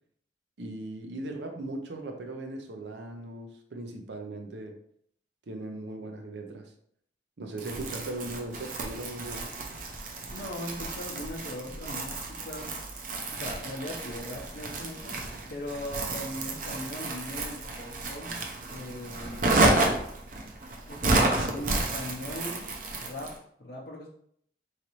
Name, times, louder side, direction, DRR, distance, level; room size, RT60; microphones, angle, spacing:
voice 1, 0.6-4.8 5.5-6.7 7.4-9.5 13.1-13.2, right 2 dB, 85° right, 4 dB, 0.6 m, -38 dB
Crumpling crinkling, 7.6-23.4, right 2 dB, 50° right, 0.6 m, -31 dB
voice 2, 10.3-12.7 13.3-15.2 15.5-18.3 18.7-19.6 20.9-22.7 23.0-24.1, left 1 dB, 55° left, -2 dB, 0.6 m, -39 dB
3.9 x 3.2 x 3.0 m, 0.66 s
head